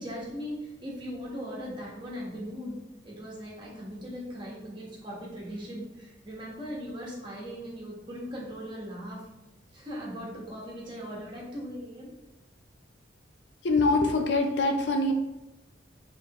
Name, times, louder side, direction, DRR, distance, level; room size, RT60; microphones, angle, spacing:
voice 1, 0.0-2.8 3.0-9.3 9.7-12.1, equal, 25° right, -5 dB, 1.3 m, -39 dB
voice 2, 13.6-15.1, left 2 dB, 70° left, 5 dB, 0.5 m, -24 dB
4.5 x 3.9 x 3.0 m, 0.97 s
head